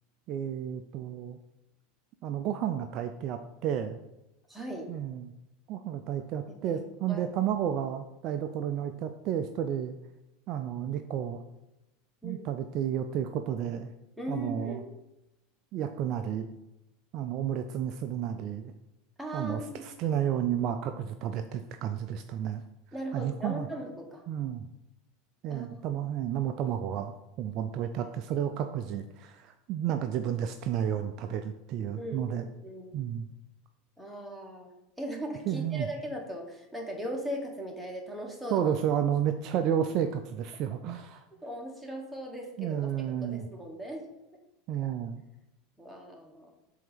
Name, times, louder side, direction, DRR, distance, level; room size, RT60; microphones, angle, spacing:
voice 1, 0.3-1.4 2.2-4.0 4.9-5.3 5.7-10.0 10.5-11.4 12.2-13.9 14.3-14.8 15.7-16.5 17.1-18.7 19.3-22.6 23.1-23.7 24.3-24.7 25.4-32.5 32.9-33.3 35.5-35.9 38.5-41.2 42.6-43.5 44.7-45.2, right 9 dB, 45° right, 7 dB, 0.4 m, -31 dB
voice 2, 4.5-4.9 6.5-6.8 7.1-7.2 12.2-12.5 14.2-14.8 19.2-19.8 22.9-24.2 25.5-26.1 32.0-33.0 34.0-34.7 35.0-38.7 41.4-42.9 43.2-44.1 45.8-46.5, equal, ahead, -1 dB, 1.4 m, -38 dB
7.5 x 2.8 x 5.1 m, 0.92 s
figure-of-eight pair, 80°, 0 cm